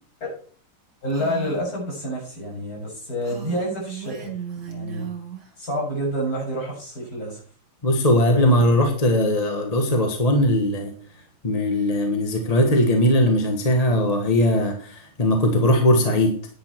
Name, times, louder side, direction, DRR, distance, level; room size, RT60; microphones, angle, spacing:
voice 1, 1.0-4.3 4.7-5.1 5.6-7.4 8.3-8.4, equal, 45° left, -2 dB, 7.3 m, -28 dB
Female speech woman speaking, 1.1-1.7 3.2-5.5, right 8 dB, 55° right, 3.0 m, -36 dB
voice 2, 7.8-10.9 11.4-16.4, left 1 dB, 20° left, 3 dB, 1.4 m, -19 dB
10.5 x 10.0 x 4.5 m, 0.44 s
omnidirectional pair, 2.3 m